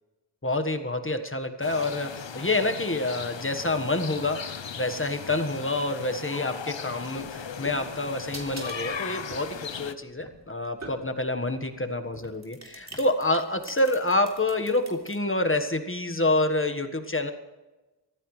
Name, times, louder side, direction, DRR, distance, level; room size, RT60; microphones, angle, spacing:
voice 1, 0.4-17.3, left 2 dB, 30° left, 7 dB, 1.5 m, -27 dB
sound 1, 1.6-9.9, left 7 dB, 85° left, 0.8 m, -38 dB
sound 2, 7.2-11.4 12.1-15.2, right 1 dB, 40° right, 3.4 m, -44 dB
Walk footsteps, 8.9-9.0 9.5-9.7 10.2-10.3 10.8-11.1 11.5-11.7 12.1-12.4 12.9-13.1, left 1 dB, 10° left, 3.4 m, -52 dB
23.5 x 15.0 x 3.3 m, 1.1 s
wide cardioid pair, 55°, 44 cm